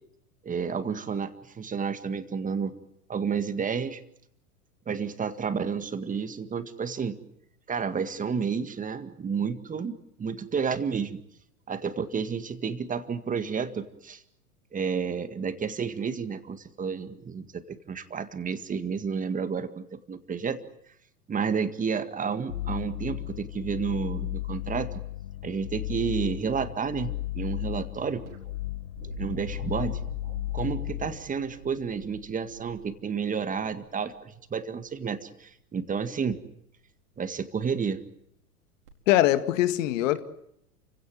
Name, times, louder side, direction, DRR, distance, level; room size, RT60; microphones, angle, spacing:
voice 1, 0.4-2.7 3.1-4.0 4.9-7.2 7.7-9.9 10.2-11.2 11.7-14.2 14.7-20.6 21.3-24.9 25.4-28.2 29.2-30.0 30.5-36.4 37.2-38.0, right 6 dB, 15° right, 10 dB, 1.9 m, -31 dB
sound 1, 22.5-31.2, left 16 dB, 70° left, 1.2 m, -35 dB
sound 2, 28.2-34.2 35.8-36.3 38.9-39.0, right 2 dB, 70° right, 4.6 m, -45 dB
voice 2, 39.1-40.2, left 14 dB, 55° left, 11 dB, 2.0 m, -22 dB
29.0 x 17.0 x 9.3 m, 0.75 s
hypercardioid pair, 95°, 45 cm